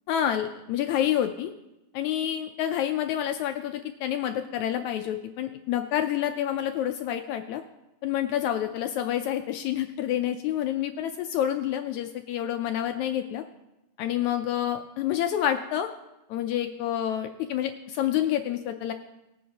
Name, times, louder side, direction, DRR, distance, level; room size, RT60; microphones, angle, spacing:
voice 1, 0.1-1.5 1.9-7.6 8.0-13.4 14.0-15.9 16.3-18.9, left 11 dB, 80° left, 6 dB, 1.7 m, -28 dB
20.0 x 9.3 x 2.8 m, 0.96 s
omnidirectional pair, 3.8 m